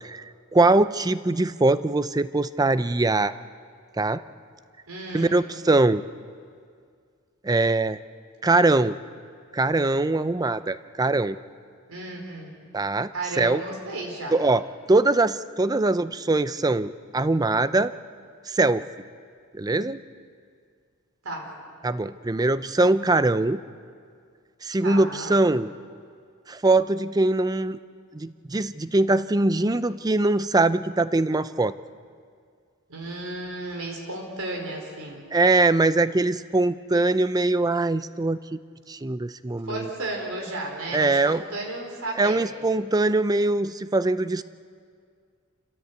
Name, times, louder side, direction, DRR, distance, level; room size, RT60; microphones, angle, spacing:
voice 1, 0.5-3.3 4.0-4.2 5.1-6.0 7.4-8.0 8.4-9.0 9.5-11.4 12.7-13.1 13.4-13.6 14.3-14.6 14.9-17.9 18.5-18.8 19.5-20.0 21.8-23.6 24.6-25.7 26.5-27.8 28.1-31.8 35.3-38.6 38.9-39.9 40.9-41.4 42.2-44.4, right 2 dB, 15° right, 14 dB, 0.5 m, -22 dB
voice 2, 4.9-5.4 11.9-12.5 13.1-14.4 21.2-21.5 24.8-25.3 32.9-35.3 39.6-42.7, right 2 dB, 80° right, 1 dB, 4.3 m, -34 dB
28.5 x 15.5 x 8.2 m, 2.1 s
head